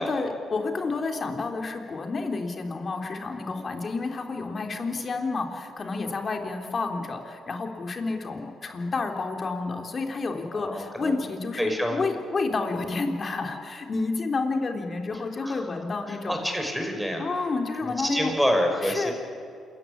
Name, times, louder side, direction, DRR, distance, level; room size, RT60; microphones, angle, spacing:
voice 1, 0.0-16.4 17.2-18.3 18.8-19.1, left 3 dB, 45° left, 4 dB, 3.5 m, -30 dB
voice 2, 10.5-11.1 11.6-12.0 15.4-15.6 16.1-17.2 18.0-19.1, equal, ahead, 3 dB, 5.6 m, -27 dB
27.0 x 15.0 x 10.0 m, 2.3 s
supercardioid pair, 65°, 0 cm